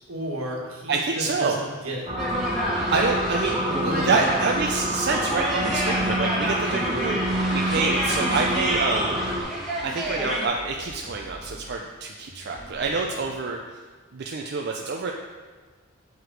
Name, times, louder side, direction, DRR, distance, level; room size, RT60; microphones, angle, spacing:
voice 1, 0.1-2.3 3.7-4.2 6.6-6.8, right 1 dB, 75° right, -2 dB, 1.6 m, -33 dB
voice 2, 0.9-1.6 2.9-3.6 4.0-7.2 7.5-9.4 9.8-13.8 14.1-15.1, right 4 dB, 50° right, 1 dB, 0.4 m, -27 dB
sound 1, 2.1-9.4, equal, 20° right, 1.6 m, -28 dB
sound 2, 2.2-10.5, right 1 dB, ahead, 1.4 m, -29 dB
sound 3, 2.3-3.5 4.0-6.3 6.8-9.0 9.5-11.8 12.3-13.3, equal, 30° left, 1.4 m, -45 dB
7.9 x 4.9 x 4.6 m, 1.4 s
head